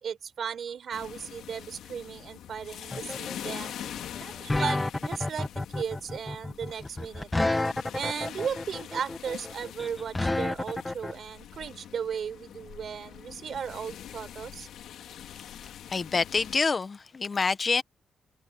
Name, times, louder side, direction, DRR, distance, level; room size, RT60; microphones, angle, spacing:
voice 1, 0.0-3.8 4.2-7.3 7.9-14.7, right 7 dB, 60° right, 4.8 m, -36 dB
sound 1, 0.9-16.6, left 10 dB, 90° left, 2.3 m, -44 dB
sound 2, 2.9-11.1, left 2 dB, 15° left, 1.1 m, -30 dB
voice 2, 15.6-17.8, left 4 dB, 40° left, 1.2 m, -27 dB
cardioid pair, 85°, 0 cm